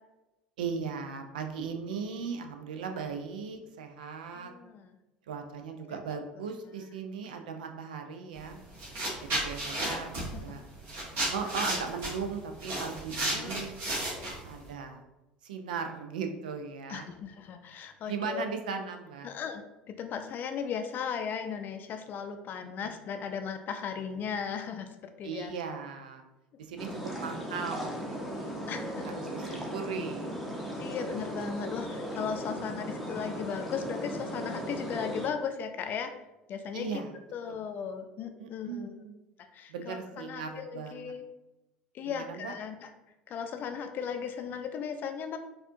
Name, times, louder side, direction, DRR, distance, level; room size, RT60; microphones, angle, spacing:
voice 1, 0.6-4.5 5.3-8.6 9.2-10.6 11.3-13.7 14.5-15.0 15.4-17.1 18.1-19.3 22.8-22.9 25.2-26.2 26.6-26.9 27.2-28.5 29.3-30.7 36.7-37.1 37.5-37.6 38.4-39.2 39.7-41.1 42.1-42.5, right 5 dB, 75° right, 5 dB, 0.4 m, -38 dB
voice 2, 4.3-4.9 5.8-6.0 9.4-9.5 9.7-10.4 13.3-13.6 14.2-14.3 16.9-18.4 19.2-19.6 20.0-25.5 28.7-29.6 30.8-36.1 36.5-37.0 37.3-39.0 39.4-41.2 41.9-42.9 43.3-45.4, left 7 dB, 45° left, 7 dB, 0.4 m, -37 dB
sound 1, 8.4-8.5 8.8-14.7, right 1 dB, 55° right, 1.4 m, -33 dB
sound 2, 26.8-35.3, equal, ahead, 0.7 m, -37 dB
4.1 x 2.4 x 2.6 m, 0.98 s
hypercardioid pair, 70°, 5 cm